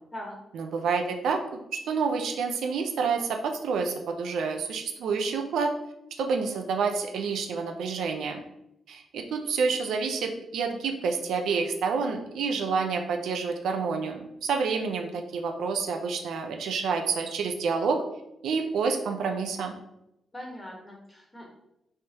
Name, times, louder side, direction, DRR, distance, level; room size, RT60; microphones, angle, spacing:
voice 1, 0.5-5.7 6.2-8.4 8.9-18.0 18.4-19.7, right 5 dB, 85° right, 4 dB, 0.7 m, -28 dB
voice 2, 20.3-21.4, left 1 dB, 15° left, -1 dB, 1.6 m, -41 dB
9.8 x 3.5 x 3.0 m, 0.84 s
wide cardioid pair, 150°, 0 cm